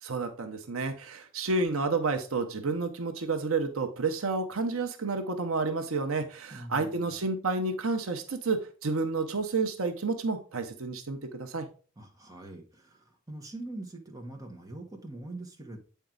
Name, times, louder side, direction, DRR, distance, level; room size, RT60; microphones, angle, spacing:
voice 1, 0.0-11.7, right 3 dB, 65° right, 7 dB, 0.9 m, -30 dB
voice 2, 6.5-7.1 12.0-15.8, right 2 dB, 15° right, 1 dB, 1.3 m, -43 dB
8.3 x 4.6 x 3.8 m, 0.38 s
head